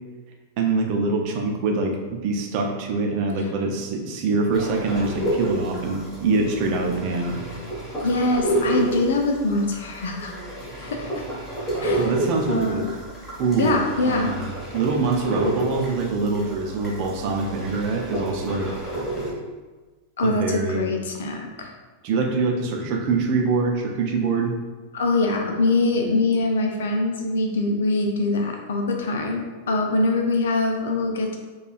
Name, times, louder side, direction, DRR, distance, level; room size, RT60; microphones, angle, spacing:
voice 1, 0.6-7.4 11.9-12.8 13.4-13.7 14.0-18.7 20.2-20.9 22.0-24.5, right 4 dB, 45° right, 2 dB, 0.5 m, -24 dB
sound 1, 4.5-19.3, right 1 dB, 10° left, 1.3 m, -30 dB
voice 2, 8.0-10.3 10.7-11.2 11.8-12.1 12.5-12.9 13.6-14.3 20.2-21.7 24.9-31.4, left 2 dB, 60° left, 2 dB, 0.5 m, -23 dB
4.6 x 2.3 x 2.4 m, 1.3 s
figure-of-eight pair, 90°, 0 cm